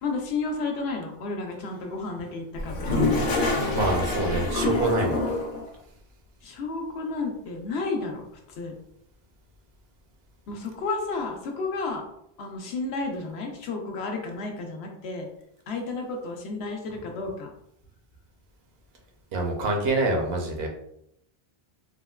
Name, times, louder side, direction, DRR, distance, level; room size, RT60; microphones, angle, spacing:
voice 1, 0.0-3.0 6.4-8.2 8.6-8.7 10.5-12.0 12.4-15.3 15.7-17.5, left 3 dB, 85° left, 2 dB, 0.9 m, -32 dB
Toilet flush, 2.5-5.6, left 2 dB, 55° left, 0.8 m, -26 dB
voice 2, 3.6-5.3 19.3-20.7, right 2 dB, 75° right, 2 dB, 0.9 m, -26 dB
3.5 x 2.1 x 2.3 m, 0.75 s
omnidirectional pair, 1.0 m